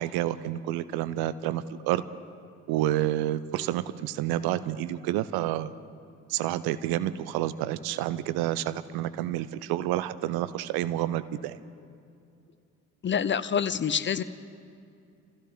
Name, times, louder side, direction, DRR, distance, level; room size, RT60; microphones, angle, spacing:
voice 1, 0.0-2.0 2.7-5.7 6.3-11.6, right 13 dB, 65° right, 15 dB, 0.7 m, -29 dB
voice 2, 13.0-14.2, left 7 dB, 30° left, 14 dB, 0.6 m, -26 dB
25.5 x 15.5 x 3.6 m, 2.5 s
figure-of-eight pair, 45°, 41 cm